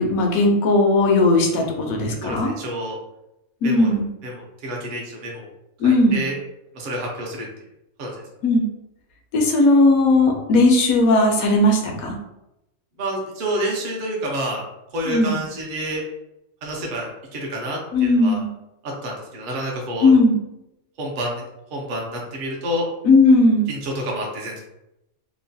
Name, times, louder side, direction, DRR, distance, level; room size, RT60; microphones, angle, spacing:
voice 1, 0.0-2.5 3.6-4.1 5.8-6.2 8.4-8.7 9.3-12.2 15.1-15.3 17.9-18.5 20.0-20.3 23.0-23.7, left 2 dB, 80° left, 1 dB, 1.0 m, -17 dB
voice 2, 2.2-3.0 3.6-3.9 4.2-5.5 5.8-6.3 6.7-7.5 8.0-8.2 13.0-14.6 14.9-16.0 16.6-18.4 18.8-20.1 21.0-21.4 21.7-22.9 23.7-24.6, right 1 dB, 50° right, -1 dB, 0.6 m, -28 dB
3.0 x 2.1 x 2.6 m, 0.89 s
omnidirectional pair, 1.5 m